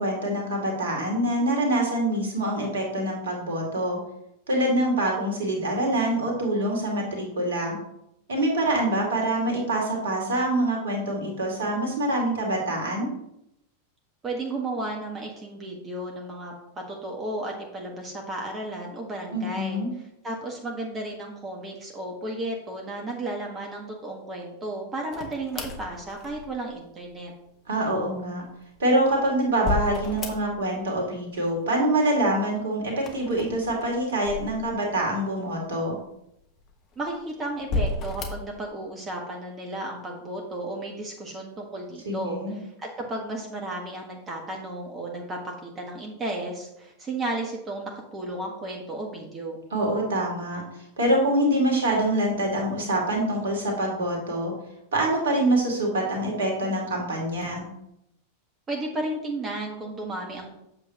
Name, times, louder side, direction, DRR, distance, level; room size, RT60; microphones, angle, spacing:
voice 1, 0.0-4.0 4.5-7.8 8.3-13.1 19.3-19.9 27.7-28.4 28.8-36.0 42.1-42.5 49.7-50.6 51.0-54.5 54.9-57.7, right 1 dB, 60° right, 0 dB, 2.1 m, -25 dB
voice 2, 14.2-19.8 20.2-27.3 36.9-49.6 58.7-60.5, right 2 dB, 20° right, 0 dB, 1.5 m, -33 dB
sound 1, 25.1-26.8 28.6-30.8 31.1-31.8 32.9-35.1 35.7-35.8 36.6-37.1 37.6-38.6, left 2 dB, 30° left, 1.2 m, -33 dB
8.2 x 6.9 x 2.9 m, 0.82 s
figure-of-eight pair, 90°, 0 cm